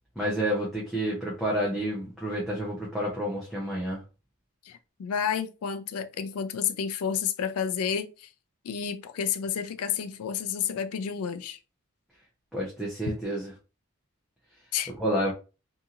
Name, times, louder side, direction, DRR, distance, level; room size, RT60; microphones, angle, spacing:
voice 1, 0.2-4.0 12.5-13.5 14.9-15.3, equal, ahead, 0.5 m, -29 dB
voice 2, 4.6-8.3 8.6-11.6 14.7-14.9, left 7 dB, 80° left, 0.3 m, -30 dB
2.8 x 2.6 x 2.4 m
head